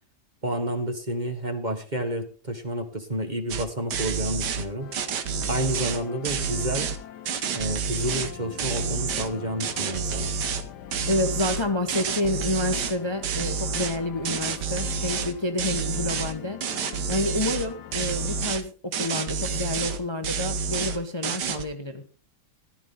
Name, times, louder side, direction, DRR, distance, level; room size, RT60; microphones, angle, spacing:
voice 1, 0.4-4.9 5.5-6.9 7.5-10.3, right 1 dB, 25° right, 6 dB, 1.5 m, -30 dB
sound 1, 3.5-3.6 3.9-4.6 4.9-7.0 7.3-8.3 8.6-9.3 9.6-10.6 10.9-13.0 13.2-14.0 14.2-15.3 15.6-16.3 16.6-17.7 17.9-18.6 18.9-20.0 20.2-21.0 21.2-21.6, right 5 dB, 80° right, 1.7 m, -29 dB
sound 2, 4.8-18.5, left 9 dB, 75° left, 1.4 m, -43 dB
voice 2, 11.1-16.6 17.1-22.1, left 2 dB, 20° left, 6 dB, 1.0 m, -29 dB
15.0 x 12.5 x 3.8 m, 0.36 s
omnidirectional pair, 1.8 m